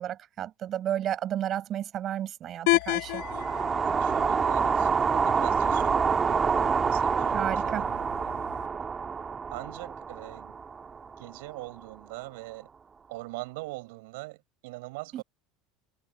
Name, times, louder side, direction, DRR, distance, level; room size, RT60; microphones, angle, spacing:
voice 1, 0.0-3.2 7.3-7.8 15.1-15.2, right 11 dB, 40° right, 6.2 m, -32 dB
sound 1, 2.7-8.7, left 23 dB, 75° left, 1.4 m, -33 dB
sound 2, 3.1-11.3, right 5 dB, 25° right, 1.9 m, -27 dB
voice 2, 4.0-8.4 9.5-10.6 11.2-12.7 13.1-15.2, right 23 dB, 80° right, 7.0 m, -42 dB
supercardioid pair, 120°, 0 cm